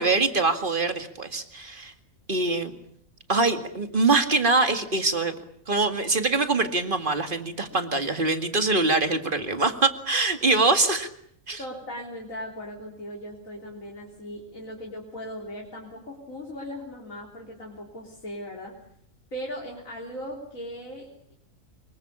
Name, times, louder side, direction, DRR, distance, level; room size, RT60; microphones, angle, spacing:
voice 1, 0.0-1.9 2.3-2.8 3.3-5.3 5.7-11.1 11.5-11.6, right 3 dB, 40° right, 7 dB, 2.3 m, -24 dB
voice 2, 11.6-18.8 19.3-21.3, equal, 80° left, 0 dB, 4.1 m, -38 dB
25.5 x 23.0 x 8.4 m, 0.66 s
omnidirectional pair, 1.4 m